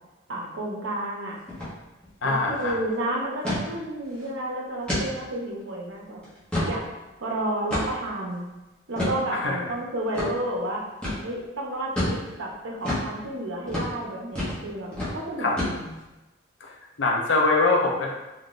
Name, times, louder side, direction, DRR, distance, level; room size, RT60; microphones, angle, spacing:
voice 1, 0.3-1.4 2.2-6.2 6.6-6.9 7.2-8.5 8.9-10.8 11.2-15.9, right 1 dB, 85° right, -2 dB, 0.7 m, -31 dB
sound 1, 1.5-1.7 2.0-2.1 2.5-2.7 3.4-3.6 4.1-4.3 4.9-5.1 5.6-5.7 6.2-6.8 7.7-8.1 9.0-9.2 10.1-10.3 11.0-11.2 12.0-12.2 12.8-13.1 13.7-13.9 14.4-14.6 14.9-15.1 15.6-16.0, left 1 dB, 5° left, 0.8 m, -28 dB
voice 2, 2.2-2.7 9.3-9.7 15.4-15.6 16.6-18.1, left 3 dB, 70° left, -1 dB, 0.6 m, -23 dB
3.6 x 2.5 x 2.4 m, 1.1 s
head